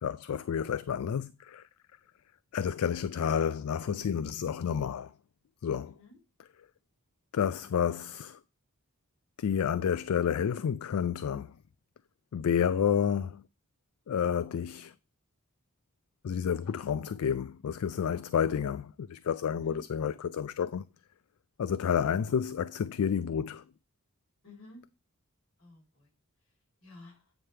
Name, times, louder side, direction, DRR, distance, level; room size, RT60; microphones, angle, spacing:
voice 1, 0.0-1.6 2.5-5.1 5.6-5.9 7.3-8.4 9.4-11.5 12.3-13.4 14.1-14.9 16.2-20.9 21.6-23.6, left 7 dB, 85° left, 0.4 m, -30 dB
voice 2, 5.8-6.2 16.3-16.5 16.9-17.0 19.6-19.9 24.4-24.8 25.6-26.1 26.8-27.3, left 1 dB, 70° left, 3.8 m, -53 dB
9.0 x 3.3 x 5.6 m
head